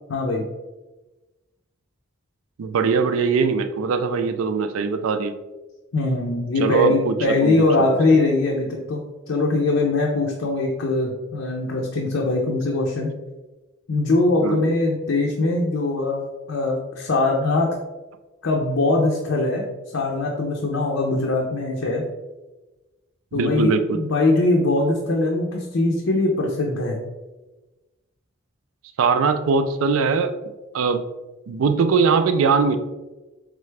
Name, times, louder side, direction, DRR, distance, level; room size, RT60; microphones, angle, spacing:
voice 1, 0.1-0.5 5.9-13.1 13.9-17.7 18.4-19.6 19.9-22.0 23.3-27.0, left 2 dB, 70° left, -1 dB, 0.6 m, -21 dB
voice 2, 2.6-5.3 6.6-8.0 14.4-14.7 23.4-24.0 29.0-30.3 30.7-31.0 31.5-32.8, right 5 dB, 85° right, 10 dB, 0.4 m, -21 dB
3.7 x 3.3 x 3.2 m, 1.1 s
head